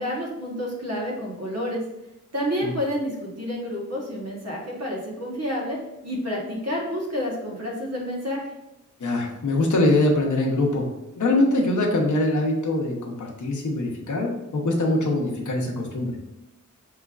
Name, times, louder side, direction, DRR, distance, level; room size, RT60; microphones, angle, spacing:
voice 1, 0.0-1.8 2.3-8.4, equal, 55° right, -2 dB, 1.1 m, -29 dB
voice 2, 9.0-10.8 11.2-16.2, left 2 dB, 70° left, -1 dB, 0.8 m, -23 dB
4.9 x 3.1 x 2.4 m, 0.91 s
wide cardioid pair, 95°, 31 cm